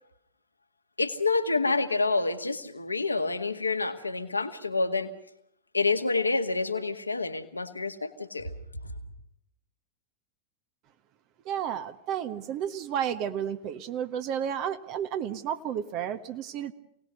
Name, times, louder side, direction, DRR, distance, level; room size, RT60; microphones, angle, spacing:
voice 1, 1.0-5.1 5.7-8.5, left 3 dB, 80° left, 8 dB, 1.8 m, -28 dB
voice 2, 11.4-16.7, right 9 dB, 40° right, 9 dB, 1.3 m, -32 dB
28.0 x 19.0 x 6.6 m, 0.75 s
figure-of-eight pair, 90°, 0 cm